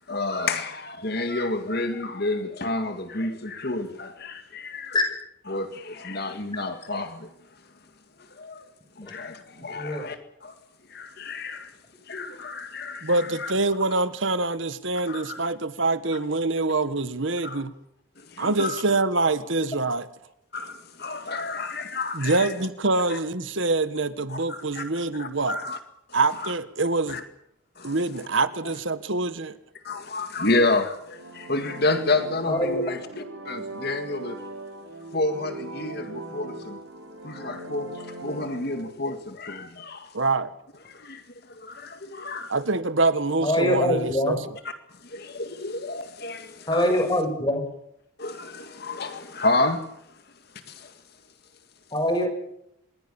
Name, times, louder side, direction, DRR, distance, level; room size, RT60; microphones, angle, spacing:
voice 1, 0.1-5.0 5.5-7.3 8.3-8.6 9.0-10.5 10.9-11.7 12.1-13.5 15.1-15.5 17.4-17.6 18.2-18.8 20.5-22.5 23.1-23.2 24.3-25.8 26.1-26.5 27.1-27.2 27.8-28.3 29.8-34.4 35.1-36.8 37.2-40.1 40.9-41.2 41.5-42.5 44.7-44.8 45.0-47.1 48.2-50.0 50.7-51.0, left 2 dB, 50° left, 2.0 m, -30 dB
voice 2, 13.0-17.7 18.4-20.1 22.1-25.6 26.1-27.2 27.8-29.6 40.1-40.5 42.5-44.4, right 3 dB, 65° right, 1.5 m, -25 dB
sound 1, 31.0-38.9, right 2 dB, 80° right, 4.7 m, -39 dB
voice 3, 32.5-32.8 43.4-44.3 46.7-47.6 51.9-52.3, left 1 dB, 20° left, 6.5 m, -23 dB
26.5 x 22.0 x 7.1 m
head